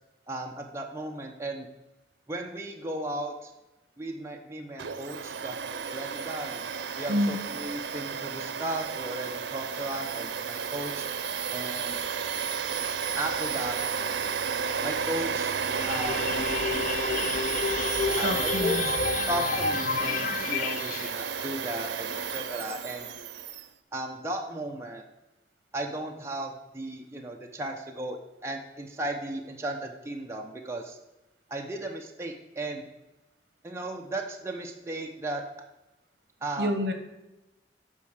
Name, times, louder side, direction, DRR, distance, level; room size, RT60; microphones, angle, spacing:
voice 1, 0.3-1.7 2.3-3.5 4.0-6.6 7.0-11.1 11.5-12.0 13.2-13.8 14.8-15.5 15.9-16.3 18.2-19.0 19.3-23.1 23.9-25.0 25.7-31.0 31.5-32.8 33.6-35.4 36.4-36.7, right 1 dB, 15° right, 1 dB, 0.8 m, -35 dB
Domestic sounds home sounds, 4.8-23.7, right 6 dB, 85° right, 0.6 m, -32 dB
sound 1, 15.6-21.1, left 5 dB, 50° left, 0.5 m, -30 dB
voice 2, 18.2-18.8 36.6-36.9, equal, 65° right, 7 dB, 1.3 m, -27 dB
9.0 x 5.7 x 6.5 m, 0.98 s
head